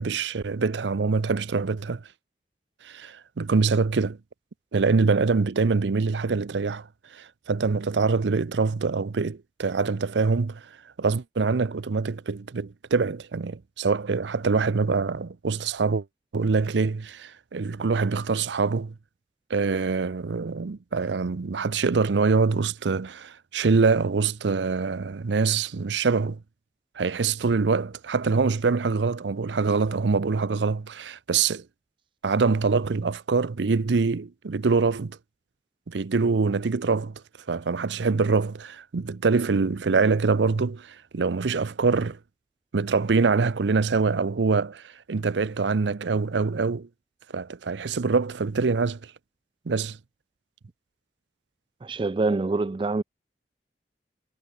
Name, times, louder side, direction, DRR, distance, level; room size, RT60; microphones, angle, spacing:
voice 1, 0.0-2.0 2.8-4.2 4.7-10.7 11.0-16.1 16.3-18.9 19.5-26.4 27.0-31.6 32.2-35.2 35.9-37.2 37.5-42.2 42.7-46.9 47.3-49.1 49.7-50.0, right 4 dB, 85° right, 0.6 m, -24 dB
voice 2, 51.8-53.0, right 3 dB, 30° right, 0.3 m, -25 dB
head